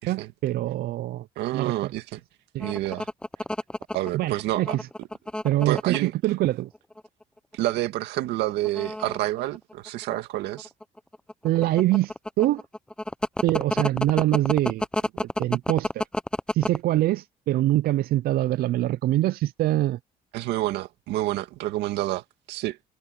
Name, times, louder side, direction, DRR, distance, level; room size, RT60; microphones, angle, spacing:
voice 1, 0.0-1.3 1.5-1.9 2.5-2.7 4.1-4.9 5.4-6.7 11.4-12.6 13.4-14.9 15.2-16.0 16.5-20.0, right 15 dB, 65° right, 0.5 m, -24 dB
voice 2, 1.4-2.2 2.6-3.1 3.9-4.8 5.7-6.1 7.5-10.7 20.3-22.9, right 16 dB, 85° right, 2.0 m, -28 dB
sound 1, 2.6-6.0 6.7-7.2 7.5-7.7 8.5-10.2 10.6-16.8, left 1 dB, 5° left, 0.6 m, -29 dB
cardioid pair, 110°, 17 cm